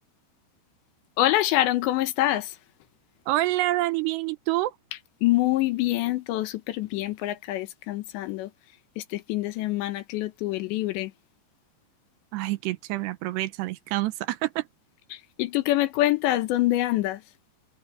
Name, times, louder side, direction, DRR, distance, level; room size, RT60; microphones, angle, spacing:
voice 1, 1.2-2.5 5.2-8.5 9.0-11.1 15.1-17.2, left 15 dB, 85° left, 3.4 m, -25 dB
voice 2, 3.3-4.8 12.3-14.7, right 17 dB, 80° right, 2.9 m, -27 dB
open air
omnidirectional pair, 5.0 m